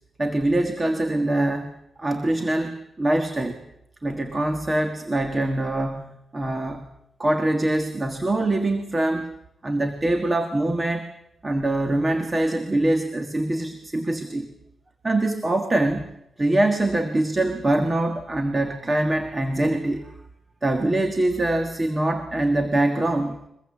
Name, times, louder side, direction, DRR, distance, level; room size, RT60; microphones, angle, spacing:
voice 1, 0.2-1.7 2.0-3.7 4.0-6.9 7.2-9.3 9.6-11.1 11.4-14.5 15.0-20.1 20.6-23.4, right 1 dB, 25° right, 7 dB, 1.6 m, -24 dB
23.0 x 21.5 x 7.5 m, 0.79 s
wide cardioid pair, 120°, 0 cm